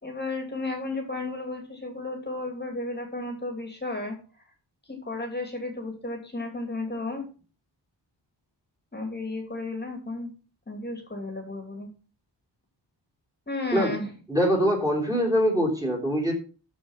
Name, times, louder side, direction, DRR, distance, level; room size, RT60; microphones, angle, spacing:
voice 1, 0.0-4.1 4.8-7.2 8.9-10.3 10.7-11.9 13.5-14.1, left 2 dB, 25° left, 4 dB, 2.6 m, -33 dB
voice 2, 14.3-16.3, equal, 10° right, 1 dB, 3.7 m, -23 dB
13.5 x 5.1 x 5.7 m, 0.36 s
wide cardioid pair, 165°, 43 cm